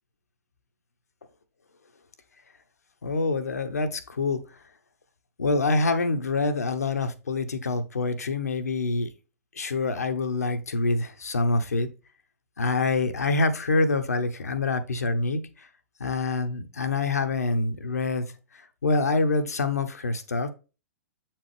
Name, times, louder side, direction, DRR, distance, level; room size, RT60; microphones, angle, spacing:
voice 1, 3.0-4.4 5.4-9.1 9.5-11.9 12.6-15.7 16.0-18.2 18.5-20.5, left 3 dB, 75° left, 0.9 m, -26 dB
7.5 x 4.5 x 3.2 m
figure-of-eight pair, 110°, 9 cm